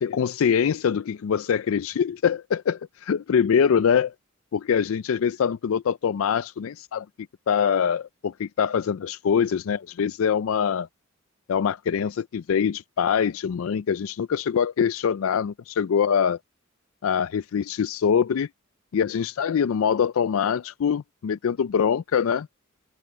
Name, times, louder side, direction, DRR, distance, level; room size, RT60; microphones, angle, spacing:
voice 1, 0.0-4.1 4.5-7.1 7.5-10.9 11.5-16.4 17.0-18.5 18.9-22.5, left 7 dB, 70° left, 0.4 m, -24 dB
head